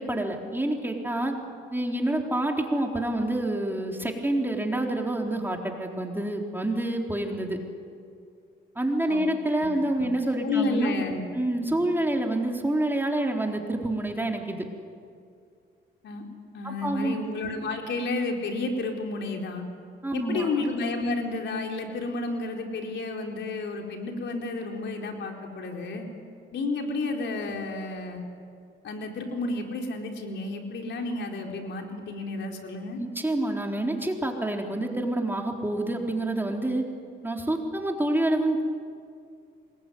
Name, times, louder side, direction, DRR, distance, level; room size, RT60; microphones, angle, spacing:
voice 1, 0.0-1.3 1.7-7.6 8.8-11.0 11.3-14.7 16.6-17.2 20.0-20.5 33.0-36.8 37.2-38.6, right 1 dB, 10° right, 1 dB, 3.9 m, -27 dB
voice 2, 10.4-11.2 11.7-11.8 16.0-16.2 16.5-19.7 20.1-26.0 26.5-28.2 28.8-33.0, left 3 dB, 65° left, 2 dB, 4.3 m, -31 dB
26.0 x 21.5 x 9.4 m, 2.3 s
cardioid pair, 90°, 20 cm